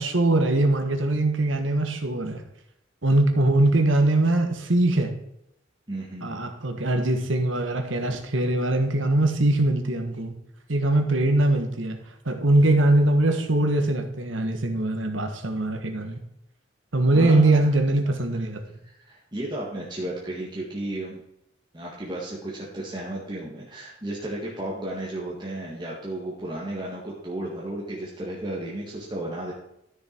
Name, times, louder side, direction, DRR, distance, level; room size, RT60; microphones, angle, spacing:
voice 1, 0.0-2.4 3.0-5.1 6.2-10.3 10.7-12.0 12.2-16.2 16.9-18.6, right 2 dB, 85° right, 6 dB, 1.5 m, -22 dB
voice 2, 5.9-6.4 17.1-17.7 18.0-18.1 18.8-21.2 21.7-29.5, right 1 dB, 25° right, -5 dB, 1.8 m, -34 dB
12.5 x 6.8 x 4.5 m, 0.79 s
head